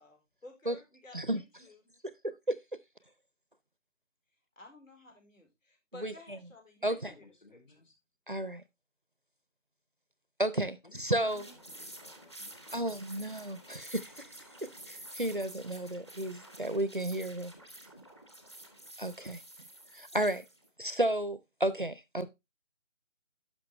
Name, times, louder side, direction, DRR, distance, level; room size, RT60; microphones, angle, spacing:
voice 1, 0.0-1.8 4.6-7.3 7.5-7.9, left 2 dB, 80° left, 4.2 m, -54 dB
voice 2, 2.2-2.6 6.0-6.1 6.8-7.1 8.3-8.6 10.4-11.5 12.7-14.1 14.6-17.5 19.0-19.4 19.9-20.4 20.8-22.3, right 1 dB, 45° right, 0.4 m, -32 dB
voice 3, 6.8-7.9 10.8-12.8, left 2 dB, 40° left, 1.6 m, -58 dB
sound 1, 11.1-20.7, right 1 dB, 20° left, 0.8 m, -50 dB
11.5 x 5.6 x 3.2 m
figure-of-eight pair, 170°, 38 cm